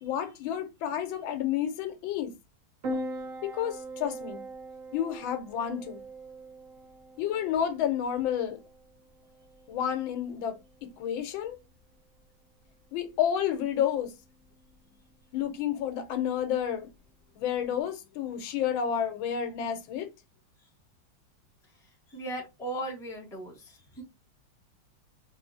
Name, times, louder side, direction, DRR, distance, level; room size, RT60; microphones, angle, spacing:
voice 1, 0.0-2.3 3.4-4.4 4.9-6.0 7.2-8.6 9.7-11.6 12.9-14.1 15.3-16.9 17.4-20.1, left 9 dB, 85° left, 1.4 m, -30 dB
Piano, 2.8-17.8, right 1 dB, 55° right, 1.0 m, -44 dB
voice 2, 22.1-24.0, right 1 dB, ahead, 0.8 m, -37 dB
3.4 x 3.0 x 2.6 m
omnidirectional pair, 2.2 m